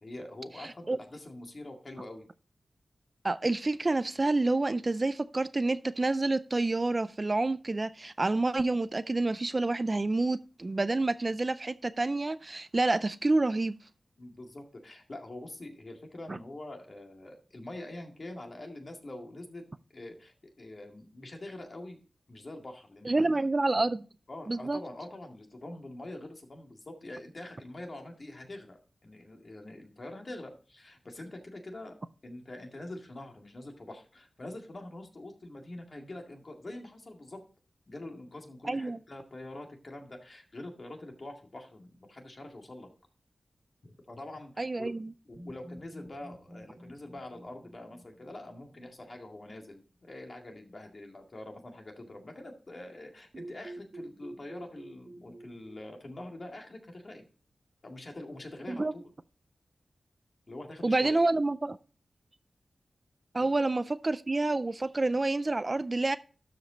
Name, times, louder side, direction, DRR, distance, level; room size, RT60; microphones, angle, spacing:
voice 1, 0.0-2.3 14.2-19.6 19.9-22.0 22.3-23.4 23.8-23.9 24.3-31.9 32.2-37.4 37.9-42.9 43.8-44.9 45.3-57.3 57.8-59.1 60.5-61.2 63.4-63.5, left 1 dB, 40° left, 2.0 m, -45 dB
voice 2, 3.2-13.8 16.3-16.4 23.1-24.0 24.5-24.8 38.6-39.0 44.6-45.1 58.7-58.9 60.8-61.8 63.3-66.2, right 2 dB, 30° right, 0.3 m, -28 dB
sound 1, 45.3-49.3 53.3-55.8, right 1 dB, 45° right, 1.8 m, -48 dB
12.5 x 5.1 x 3.9 m
wide cardioid pair, 125°, 0 cm